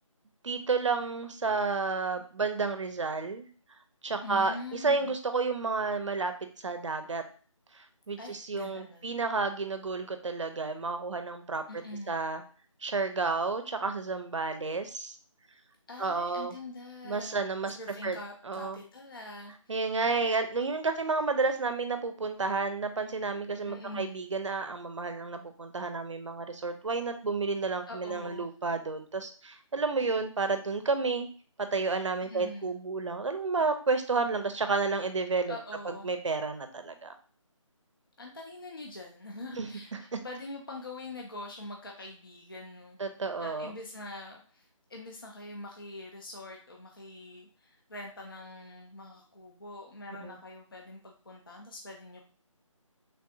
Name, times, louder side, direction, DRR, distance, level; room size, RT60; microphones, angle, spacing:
voice 1, 0.4-3.5 4.0-4.6 4.8-6.3 6.6-7.2 8.1-11.6 12.1-12.4 12.8-15.2 16.0-16.5 17.0-17.8 18.0-18.2 18.5-18.8 19.7-31.3 31.6-35.5 36.0-37.1 39.6-39.7 43.0-43.7 50.2-50.4, right 4 dB, 65° right, 8 dB, 0.5 m, -31 dB
voice 2, 4.2-5.1 8.2-9.2 11.7-12.2 15.9-17.4 17.8-19.8 23.7-24.2 27.9-28.5 32.2-32.7 35.5-36.1 38.2-43.0 43.4-52.3, left 2 dB, 40° left, 0 dB, 0.4 m, -44 dB
3.3 x 2.4 x 2.7 m, 0.41 s
figure-of-eight pair, 180°, 17 cm